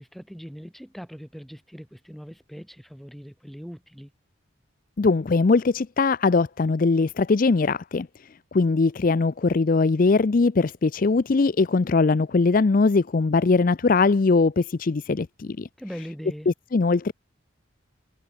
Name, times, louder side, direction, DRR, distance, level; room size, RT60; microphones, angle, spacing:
voice 1, 0.0-4.1 15.8-16.5, equal, ahead, 4.1 m, -40 dB
voice 2, 5.0-8.1 8.5-15.7 16.5-17.1, left 3 dB, 40° left, 0.4 m, -21 dB
head